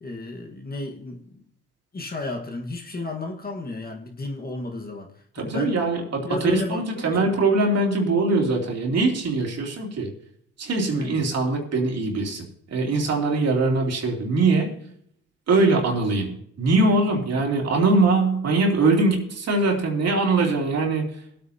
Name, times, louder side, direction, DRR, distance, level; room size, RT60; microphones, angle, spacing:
voice 1, 0.0-1.4 1.9-5.8 6.2-7.3 10.9-11.2 17.3-17.4, left 2 dB, 30° left, 2 dB, 1.6 m, -33 dB
voice 2, 5.3-10.1 10.6-14.7 15.5-21.1, right 3 dB, 55° right, 0 dB, 3.1 m, -22 dB
21.0 x 8.6 x 2.9 m, 0.67 s
cardioid pair, 90°, 30 cm